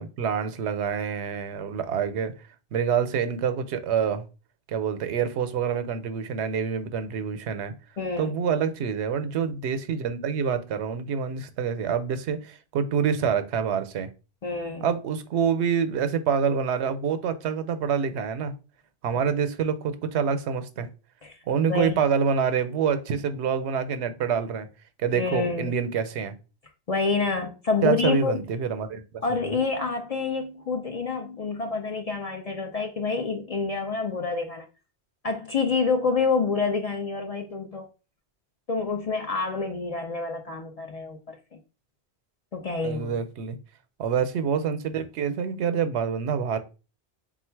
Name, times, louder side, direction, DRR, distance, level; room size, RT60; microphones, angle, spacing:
voice 1, 0.0-2.3 2.7-4.2 4.7-7.8 8.2-14.1 14.8-18.5 19.0-20.9 21.5-24.7 25.0-26.3 27.8-29.5 42.8-43.6 44.0-46.6, right 7 dB, 90° right, 0.9 m, -26 dB
voice 2, 8.0-8.3 14.4-14.9 21.2-21.4 21.7-22.0 25.1-25.7 26.9-28.4 29.2-34.7 35.2-37.9 38.7-41.6 42.5-43.1, left 4 dB, 50° left, 0.5 m, -27 dB
3.9 x 2.3 x 4.4 m
omnidirectional pair, 1.1 m